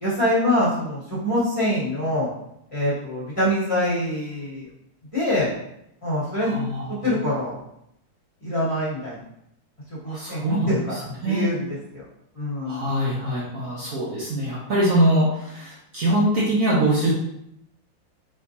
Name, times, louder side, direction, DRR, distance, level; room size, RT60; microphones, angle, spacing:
voice 1, 0.0-2.3 2.7-4.6 5.1-5.5 6.0-6.5 6.9-7.6 8.4-9.2 9.9-12.0 12.3-12.8, left 1 dB, 20° left, -10 dB, 1.5 m, -25 dB
voice 2, 6.4-7.2 10.0-11.4 12.6-17.1, right 1 dB, 55° right, -7 dB, 1.1 m, -23 dB
4.2 x 3.6 x 2.7 m, 0.79 s
omnidirectional pair, 2.0 m